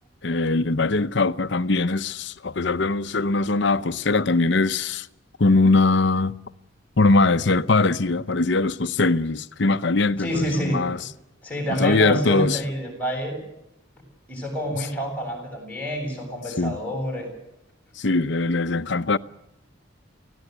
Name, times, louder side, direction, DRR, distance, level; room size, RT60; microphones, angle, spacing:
voice 1, 0.2-5.1 5.4-6.4 7.0-11.0 11.7-12.6 16.6-16.8 18.0-19.2, left 3 dB, 60° left, 0.8 m, -21 dB
voice 2, 10.2-10.9 11.4-13.4 14.3-17.3, equal, 5° left, 7.5 m, -28 dB
24.0 x 17.0 x 8.2 m
head